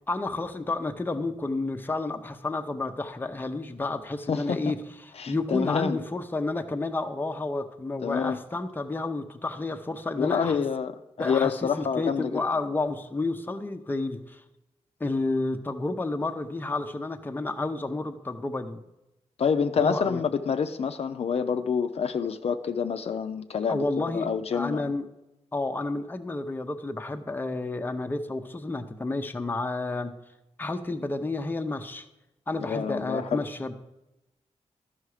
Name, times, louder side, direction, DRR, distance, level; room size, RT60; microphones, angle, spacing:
voice 1, 0.1-10.6 11.2-11.5 11.8-14.4 15.0-18.8 19.8-20.2 23.7-25.0 25.5-30.1 30.6-32.1 32.5-33.7, left 2 dB, 15° left, 6 dB, 0.6 m, -30 dB
voice 2, 4.3-4.6 5.2-6.0 8.0-8.4 10.2-12.4 19.4-24.9 32.6-33.4, left 6 dB, 60° left, 8 dB, 0.5 m, -27 dB
12.5 x 5.7 x 4.8 m, 0.94 s
wide cardioid pair, 120°, 12 cm